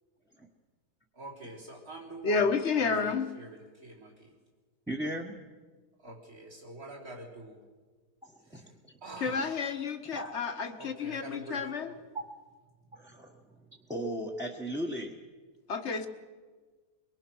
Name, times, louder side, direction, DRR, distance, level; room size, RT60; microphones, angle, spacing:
voice 1, 1.1-4.3 6.0-7.6 8.5-8.7 9.0-9.7 10.8-12.0, right 1 dB, 60° right, -1 dB, 4.6 m, -46 dB
voice 2, 2.2-3.4 9.2-11.9 15.7-16.1, left 5 dB, 45° left, 6 dB, 1.6 m, -30 dB
voice 3, 4.9-5.4 8.2-8.9 9.2-9.5 10.1-10.3 12.1-12.3 12.9-13.4 13.9-15.1, right 1 dB, ahead, -4 dB, 1.4 m, -37 dB
23.5 x 23.0 x 6.3 m, 1.4 s
omnidirectional pair, 1.7 m